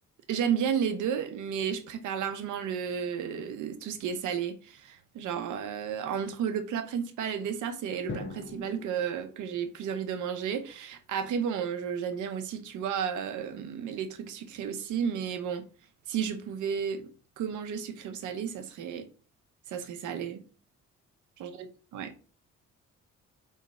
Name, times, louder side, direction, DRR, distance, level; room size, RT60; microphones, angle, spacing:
voice 1, 0.3-15.6 16.1-17.1 17.4-19.1 19.7-20.4 21.4-21.7 21.9-22.1, right 7 dB, 80° right, 0.8 m, -32 dB
Drum, 8.1-10.2, left 3 dB, 40° left, 0.8 m, -42 dB
3.7 x 3.2 x 4.1 m
cardioid pair, 90°, 30 cm